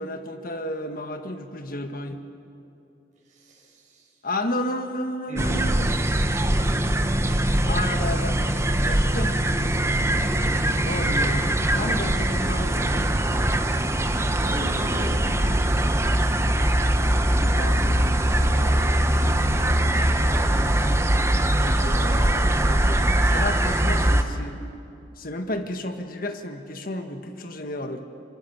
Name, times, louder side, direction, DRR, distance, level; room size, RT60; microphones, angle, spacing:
voice 1, 0.0-2.2 4.2-5.9 7.6-9.4 10.8-13.5 17.5-18.9 21.6-24.6 25.2-28.0, left 1 dB, 50° left, 6 dB, 1.5 m, -32 dB
voice 2, 3.3-4.1 5.3-6.8 9.0-9.5 10.2-10.6 14.3-16.8 19.8-20.3, equal, 45° right, -2 dB, 6.5 m, -41 dB
sound 1, 5.4-24.2, right 1 dB, 15° right, 1.0 m, -22 dB
26.0 x 24.5 x 7.2 m, 2.6 s
head